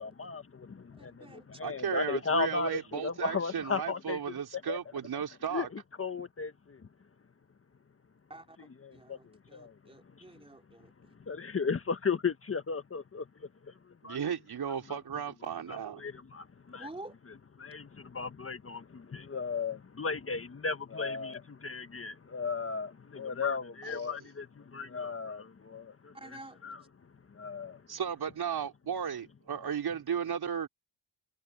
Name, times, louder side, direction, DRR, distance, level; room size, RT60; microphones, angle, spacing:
voice 1, 0.0-4.4 4.7-4.8 5.5-6.9 8.6-9.8 10.1-10.3 11.3-13.7 14.0-14.2 14.9-15.0 15.7-16.9 17.3-26.8 27.3-27.8, left 5 dB, 30° left, 1.4 m, -36 dB
voice 2, 1.0-1.5 8.3-8.6 8.9-10.9 16.8-17.1 26.1-26.6, right 2 dB, 10° right, 3.2 m, -48 dB
voice 3, 1.6-5.7 14.0-16.0 27.9-30.7, right 7 dB, 55° right, 4.1 m, -34 dB
cardioid pair, 105°, 46 cm